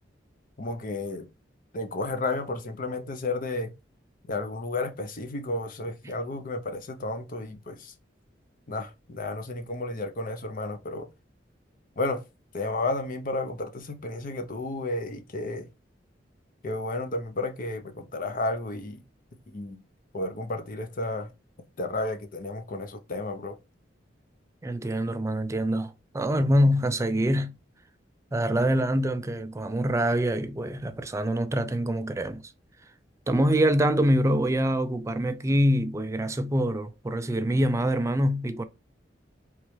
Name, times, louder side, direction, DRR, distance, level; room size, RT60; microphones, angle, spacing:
voice 1, 0.6-1.3 1.7-3.7 4.3-7.9 8.7-11.1 12.0-12.2 12.5-15.7 16.6-19.0 19.5-19.8 20.1-21.3 21.8-23.6, left 2 dB, 50° left, 0.7 m, -32 dB
voice 2, 24.6-27.5 28.3-32.4 33.3-38.6, equal, 15° right, 0.3 m, -25 dB
3.7 x 3.1 x 3.2 m
head